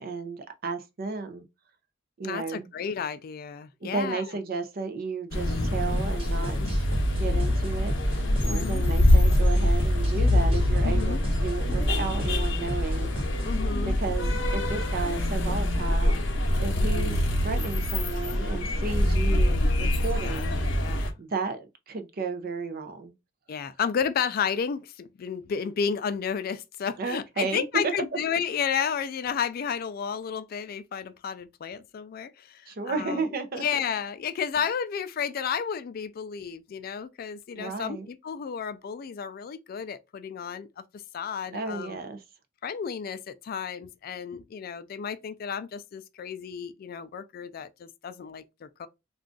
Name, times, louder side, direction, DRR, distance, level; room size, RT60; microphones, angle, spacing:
voice 1, 0.0-1.4 2.2-2.7 3.8-6.8 7.1-13.1 13.8-16.2 16.6-20.6 21.2-23.1 27.0-27.6 32.7-33.7 37.5-38.1 41.5-42.2, right 4 dB, 50° right, 0.5 m, -33 dB
voice 2, 2.2-4.2 6.6-6.7 8.5-8.8 10.8-11.2 13.4-14.0 16.8-17.1 20.2-21.1 23.5-33.3 33.5-42.0 42.6-48.9, left 7 dB, 50° left, 0.3 m, -32 dB
sound 1, 5.3-21.1, left 1 dB, 70° left, 0.7 m, -24 dB
sound 2, 6.0-13.6, equal, 30° right, 1.0 m, -35 dB
2.5 x 2.2 x 3.7 m
head